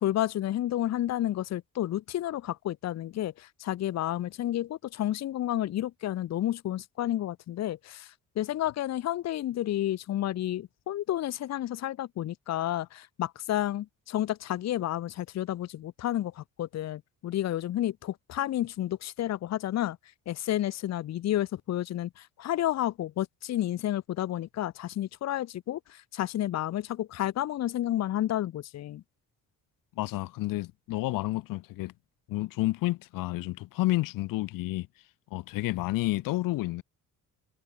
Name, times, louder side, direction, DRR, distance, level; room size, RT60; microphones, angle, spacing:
voice 1, 0.0-20.0 20.3-29.0, left 13 dB, 55° left, 0.9 m, -31 dB
voice 2, 30.0-31.9 32.3-34.9 35.3-36.8, left 18 dB, 85° left, 1.0 m, -30 dB
cardioid pair, 130°, 32 cm